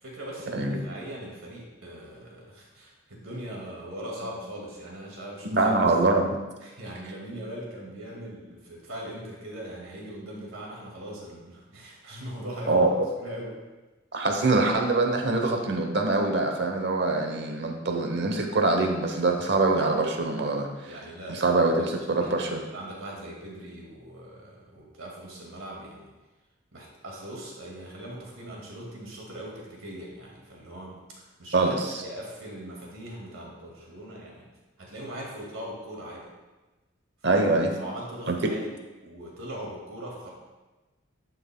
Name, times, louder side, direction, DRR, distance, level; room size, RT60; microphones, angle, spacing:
voice 1, 0.0-5.9 6.6-12.9 13.2-13.6 20.8-21.6 21.9-26.1 26.7-31.7 32.0-34.5 34.8-36.3 37.3-37.5 37.8-40.3, right 1 dB, 85° right, -2 dB, 2.1 m, -40 dB
voice 2, 5.5-6.4 12.7-13.1 14.1-20.7 21.3-22.6 31.5-32.0 37.2-37.7 38.3-38.4, right 2 dB, 55° right, 3 dB, 0.9 m, -24 dB
11.0 x 5.7 x 2.2 m, 1.2 s
head